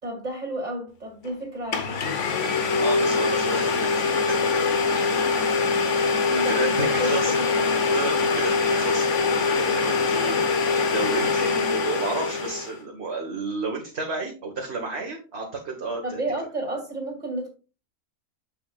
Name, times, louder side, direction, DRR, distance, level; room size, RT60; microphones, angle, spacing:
voice 1, 0.0-2.1 6.3-7.9 16.0-17.5, right 1 dB, 30° right, 2.8 m, -32 dB
Domestic sounds home sounds, 1.2-1.3 1.7-12.8, left 4 dB, 55° left, 1.3 m, -23 dB
voice 2, 2.8-4.0 4.3-4.6 5.9-7.3 7.9-9.1 9.5-10.4 10.9-16.2, right 3 dB, 45° right, 1.7 m, -32 dB
7.9 x 7.6 x 2.4 m
omnidirectional pair, 1.6 m